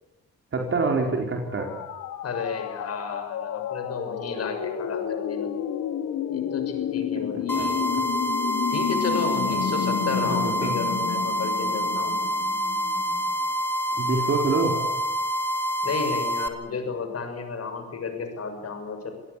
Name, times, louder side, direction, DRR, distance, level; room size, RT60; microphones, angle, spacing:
voice 1, 0.5-1.7 7.1-7.7 10.1-10.7 13.9-14.8, right 3 dB, 45° right, 1 dB, 4.6 m, -26 dB
sound 1, 1.5-13.3, left 9 dB, 80° left, 2.2 m, -31 dB
voice 2, 2.2-5.5 6.3-7.9 8.7-12.2 15.8-19.1, left 5 dB, 55° left, 7 dB, 6.8 m, -32 dB
sound 2, 7.5-16.5, equal, 5° left, 3.3 m, -27 dB
27.0 x 18.0 x 8.6 m, 1.0 s
cardioid pair, 90°, 30 cm